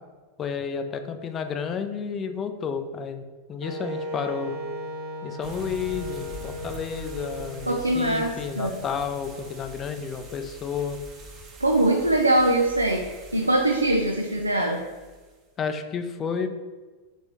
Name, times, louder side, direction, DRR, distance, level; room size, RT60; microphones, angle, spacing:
voice 1, 0.4-4.5 5.2-11.0 15.6-16.5, left 6 dB, 25° left, 7 dB, 0.4 m, -31 dB
Wind instrument woodwind instrument, 3.6-9.4, equal, 50° right, 0.9 m, -37 dB
sound 1, 5.4-15.3, right 3 dB, 25° right, 0.9 m, -44 dB
voice 2, 7.7-8.7 11.6-13.0 13.3-14.8, right 1 dB, 85° right, 1 dB, 0.4 m, -22 dB
3.4 x 3.4 x 4.1 m, 1.3 s
figure-of-eight pair, 90°, 0 cm